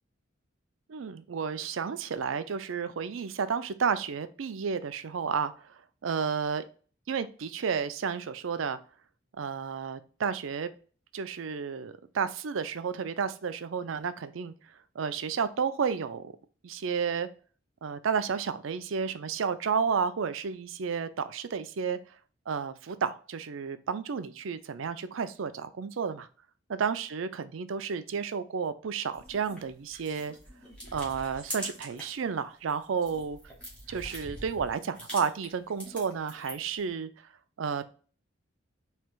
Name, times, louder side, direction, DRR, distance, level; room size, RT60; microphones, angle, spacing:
voice 1, 0.9-5.5 6.0-6.6 7.1-8.8 9.4-10.7 11.1-14.5 15.0-16.3 16.6-17.3 17.8-22.0 22.5-26.3 26.7-30.3 30.9-33.4 33.9-37.1 37.6-37.8, right 6 dB, 90° right, 12 dB, 0.5 m, -31 dB
sound 1, 29.1-32.2 32.6-36.8, equal, 5° left, 1.7 m, -44 dB
4.5 x 3.3 x 2.4 m, 0.40 s
head